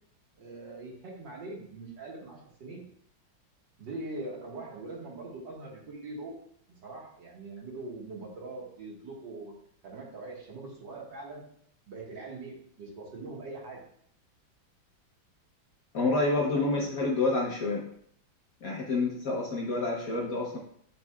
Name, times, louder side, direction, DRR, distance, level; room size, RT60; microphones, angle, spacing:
voice 1, 0.4-2.8 3.8-6.4 6.7-9.6 9.8-11.4 11.9-13.8 16.5-17.0, right 2 dB, 60° right, -3 dB, 2.1 m, -42 dB
voice 2, 15.9-17.9 18.6-20.6, left 3 dB, 55° left, -2 dB, 1.2 m, -28 dB
10.0 x 4.1 x 2.3 m, 0.65 s
omnidirectional pair, 2.2 m